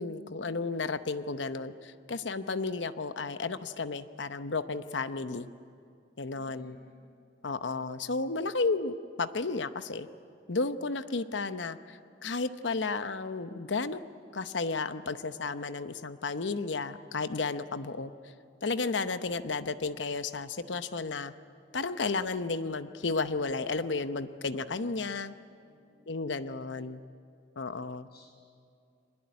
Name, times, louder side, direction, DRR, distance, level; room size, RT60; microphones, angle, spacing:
voice 1, 0.0-5.5 6.2-6.8 7.4-10.1 10.5-14.0 14.3-18.1 18.6-21.3 21.7-25.3 26.1-27.0 27.6-28.1, left 3 dB, 80° left, 11 dB, 0.9 m, -33 dB
voice 2, 6.3-7.0 25.6-26.0 28.1-28.4, left 2 dB, 55° left, 0 dB, 6.5 m, -59 dB
23.5 x 20.5 x 9.5 m, 2.5 s
head